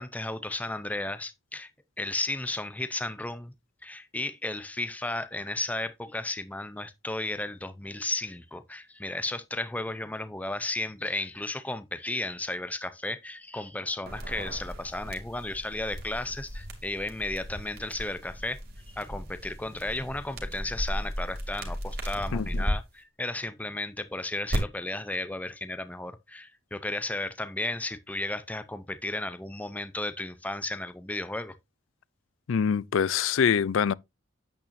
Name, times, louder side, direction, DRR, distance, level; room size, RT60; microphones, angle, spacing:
voice 1, 0.0-1.7 2.0-3.5 3.8-18.6 18.9-31.6, left 2 dB, 10° left, 0.5 m, -34 dB
sound 1, 14.0-22.7 24.5-24.6, equal, 50° right, 2.6 m, -35 dB
voice 2, 22.3-22.6 32.5-33.9, left 7 dB, 80° left, 0.4 m, -25 dB
9.0 x 8.7 x 2.6 m
head